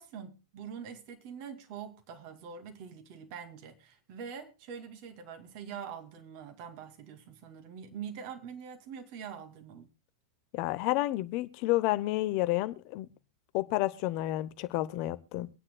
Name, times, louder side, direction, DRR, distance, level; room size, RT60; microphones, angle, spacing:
voice 1, 0.0-9.9, right 7 dB, 45° right, 2.5 m, -44 dB
voice 2, 10.5-13.1 13.5-15.5, left 17 dB, 45° left, 0.7 m, -30 dB
24.0 x 9.8 x 2.2 m
figure-of-eight pair, 90°, 0 cm